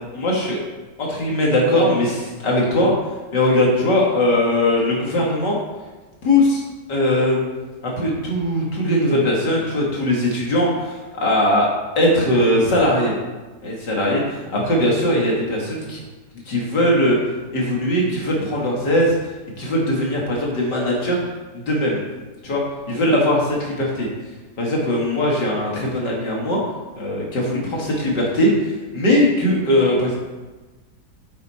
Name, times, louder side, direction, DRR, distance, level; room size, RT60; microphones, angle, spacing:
voice 1, 0.1-0.6 1.0-2.9 3.3-5.6 6.2-6.6 6.9-7.4 7.8-11.7 12.0-13.1 13.6-16.0 16.5-17.2 17.5-19.1 19.6-21.2 21.5-22.0 22.4-22.6 22.9-24.1 24.6-26.6 26.9-30.2, left 1 dB, 75° left, -3 dB, 2.9 m, -20 dB
9.1 x 8.1 x 4.5 m, 1.2 s
omnidirectional pair, 1.8 m